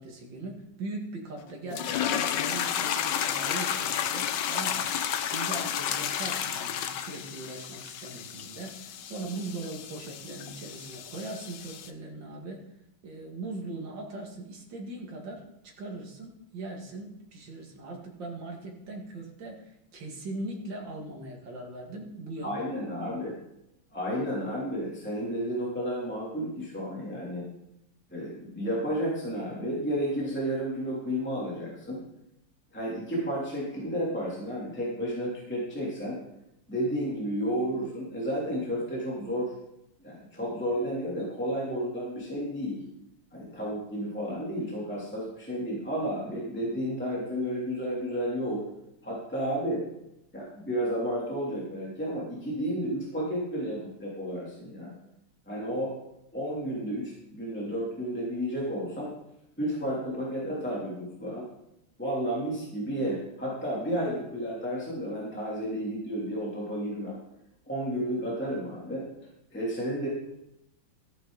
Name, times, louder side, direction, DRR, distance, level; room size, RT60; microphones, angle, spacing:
voice 1, 0.0-12.6 13.0-22.6, right 2 dB, 60° right, -1 dB, 2.8 m, -40 dB
sound 1, 1.7-11.9, left 9 dB, 65° left, 1.3 m, -32 dB
voice 2, 22.4-23.3 23.9-27.5 28.1-32.0 32.7-36.1 36.7-39.5 40.0-42.8 43.3-48.6 49.0-49.8 50.3-54.9 55.5-55.9 56.3-59.1 59.6-61.5 62.0-67.2 67.6-69.0 69.5-70.1, equal, 5° left, -6 dB, 3.0 m, -32 dB
14.5 x 9.4 x 4.0 m, 0.84 s
omnidirectional pair, 2.3 m